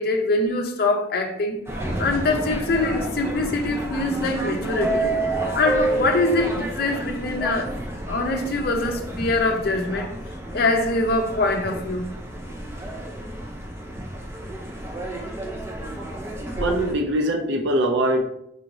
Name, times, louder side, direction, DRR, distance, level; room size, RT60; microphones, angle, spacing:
voice 1, 0.0-1.6 2.0-7.7 8.1-10.1 10.5-12.1, left 2 dB, 55° left, 0.5 m, -24 dB
sound 1, 1.7-16.9, right 2 dB, 15° right, 0.5 m, -30 dB
voice 2, 16.6-18.2, right 1 dB, 75° right, 0.4 m, -22 dB
4.7 x 2.5 x 2.9 m
head